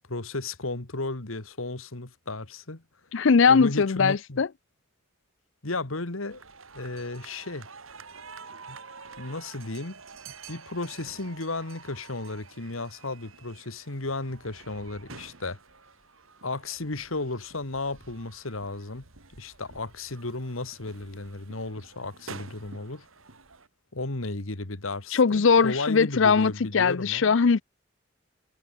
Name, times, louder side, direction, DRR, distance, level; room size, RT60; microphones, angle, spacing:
voice 1, 0.1-2.8 3.5-4.4 5.6-6.4 6.7-7.7 8.7-8.8 9.2-10.0 10.3-15.6 16.4-19.0 19.4-23.1 23.9-27.3, left 2 dB, 90° left, 2.2 m, -34 dB
voice 2, 3.1-4.5 25.1-27.6, left 5 dB, 65° left, 0.5 m, -20 dB
sound 1, 6.3-23.7, right 5 dB, 90° right, 2.8 m, -48 dB
head